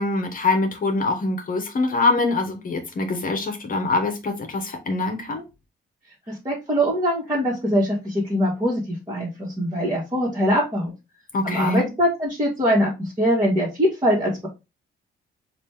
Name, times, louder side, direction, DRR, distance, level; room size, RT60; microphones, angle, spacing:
voice 1, 0.0-5.4 11.3-11.9, left 3 dB, 45° left, 1.0 m, -24 dB
voice 2, 6.3-10.9 11.4-14.5, equal, 20° right, 1.5 m, -22 dB
4.1 x 2.5 x 3.4 m
cardioid pair, 90°, 20 cm